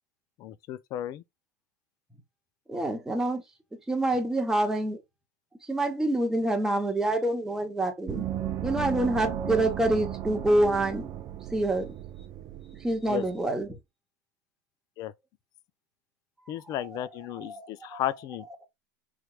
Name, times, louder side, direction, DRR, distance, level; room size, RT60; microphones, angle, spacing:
voice 1, 0.4-1.2 13.1-13.2 15.0-15.1 16.5-18.7, left 12 dB, 45° left, 0.4 m, -34 dB
voice 2, 2.7-3.4 3.9-5.0 5.7-8.2 8.6-11.1 11.5-11.9 12.8-13.8 17.5-18.0, right 1 dB, 5° right, 0.8 m, -26 dB
Gong, 8.1-13.3, right 10 dB, 40° right, 0.5 m, -35 dB
3.2 x 3.1 x 2.3 m
supercardioid pair, 120°, 9 cm